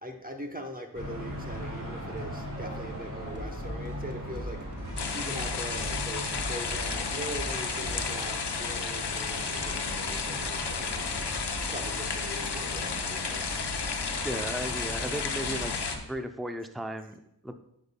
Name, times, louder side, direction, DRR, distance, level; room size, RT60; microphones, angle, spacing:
voice 1, 0.0-4.6 5.1-11.3 11.7-13.5, right 1 dB, 20° right, 3 dB, 0.8 m, -41 dB
sound 1, 0.9-16.0, equal, 45° right, 2.6 m, -39 dB
sound 2, 3.3-8.3, left 1 dB, 25° left, 1.5 m, -41 dB
sound 3, 5.0-16.0, left 5 dB, 70° left, 0.8 m, -33 dB
voice 2, 14.2-15.8 16.1-17.5, right 1 dB, ahead, 7 dB, 0.5 m, -35 dB
10.5 x 5.2 x 2.2 m, 0.77 s
wide cardioid pair, 45°, 42 cm